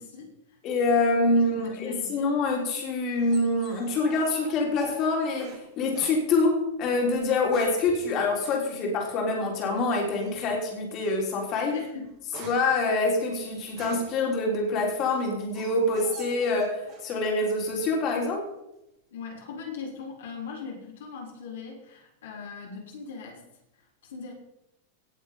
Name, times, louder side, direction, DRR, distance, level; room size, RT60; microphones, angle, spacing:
voice 1, 0.0-0.6 1.4-2.3 11.7-12.1 19.1-23.4 23.8-24.3, left 5 dB, 60° left, -2 dB, 3.6 m, -40 dB
voice 2, 0.6-11.7 12.4-18.4, left 2 dB, 35° left, 0 dB, 3.6 m, -26 dB
sound 1, 2.3-5.6 5.9-6.2 7.1-7.9 8.4-8.6 10.1-10.5 11.0-11.2 11.6-14.2 14.8-17.1 17.4-18.0, right 2 dB, 40° right, 4.5 m, -45 dB
18.0 x 7.1 x 5.4 m, 0.88 s
figure-of-eight pair, 90°, 0 cm